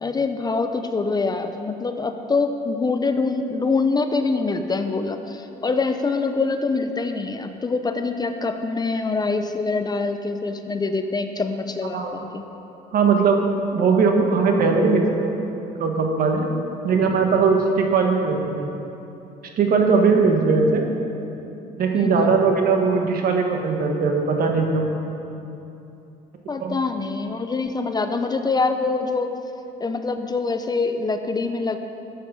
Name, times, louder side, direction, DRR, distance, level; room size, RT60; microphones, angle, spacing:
voice 1, 0.0-12.0 12.3-12.4 21.9-22.3 26.5-29.3 29.8-31.8, left 4 dB, 25° left, 7 dB, 0.6 m, -24 dB
voice 2, 12.9-15.4 15.8-16.5 16.8-18.7 19.6-20.8 21.8-24.9 26.6-26.8, right 4 dB, 60° right, 3 dB, 1.5 m, -19 dB
13.5 x 7.6 x 5.4 m, 2.9 s
cardioid pair, 110°, 17 cm